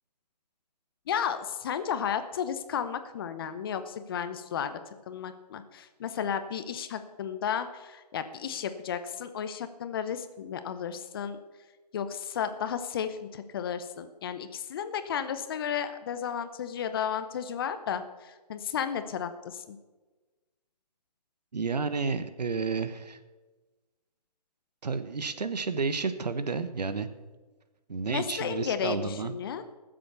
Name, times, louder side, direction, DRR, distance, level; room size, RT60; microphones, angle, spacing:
voice 1, 1.1-11.4 11.9-19.8 28.1-29.6, left 8 dB, 35° left, 11 dB, 0.8 m, -33 dB
voice 2, 21.5-23.2 24.8-27.1 27.9-29.3, right 4 dB, 75° right, 11 dB, 1.2 m, -31 dB
15.0 x 7.8 x 6.9 m, 1.2 s
figure-of-eight pair, 150°, 21 cm